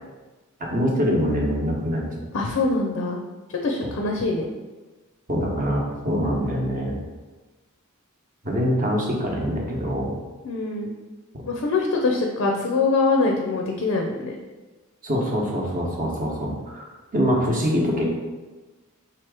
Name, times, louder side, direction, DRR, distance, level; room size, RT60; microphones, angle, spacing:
voice 1, 0.6-2.0 3.8-3.9 5.3-7.0 8.4-10.1 15.0-16.8 17.1-18.2, equal, 40° right, -1 dB, 0.9 m, -24 dB
voice 2, 2.3-3.2 3.5-4.5 10.4-10.9 11.5-14.4, left 3 dB, 65° left, 1 dB, 0.5 m, -23 dB
3.6 x 2.9 x 4.7 m, 1.2 s
head